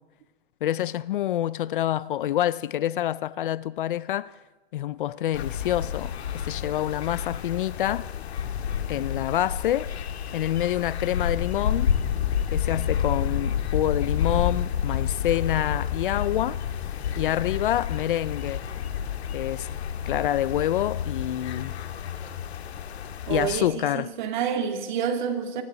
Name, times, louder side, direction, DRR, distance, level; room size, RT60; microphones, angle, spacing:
voice 1, 0.6-4.3 4.7-8.1 8.9-9.9 10.3-11.9 12.5-16.6 17.2-18.6 19.3-19.7 20.1-21.7 23.3-24.1, left 12 dB, 55° left, 0.6 m, -27 dB
sound 1, 5.3-23.6, left 8 dB, 85° left, 2.0 m, -29 dB
voice 2, 23.3-25.6, right 7 dB, 45° right, 2.9 m, -28 dB
26.5 x 25.5 x 4.0 m
hypercardioid pair, 165°, 32 cm